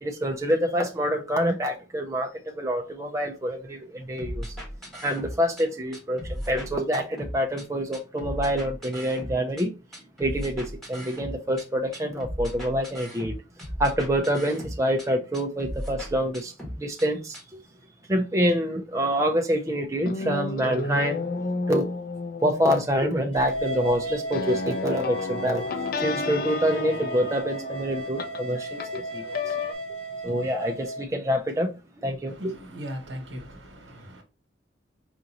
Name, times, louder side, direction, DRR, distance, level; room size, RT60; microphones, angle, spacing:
voice 1, 0.0-4.6 5.0-9.7 10.2-13.3 13.8-17.4 18.1-21.2 21.7-21.9 22.4-25.7 26.0-29.5 30.2-31.7 32.0-32.3, equal, 15° right, 0.5 m, -26 dB
sound 1, 4.2-5.6 5.9-7.6 7.9-9.6 9.9-11.6 11.9-15.1 15.3-17.1 17.3-17.4, equal, ahead, 1.5 m, -36 dB
sound 2, 20.0-29.7, left 4 dB, 50° left, 0.4 m, -33 dB
sound 3, 23.3-31.0, right 2 dB, 30° left, 1.1 m, -35 dB
voice 2, 32.3-34.2, equal, 80° right, 1.2 m, -38 dB
4.8 x 2.6 x 2.8 m
head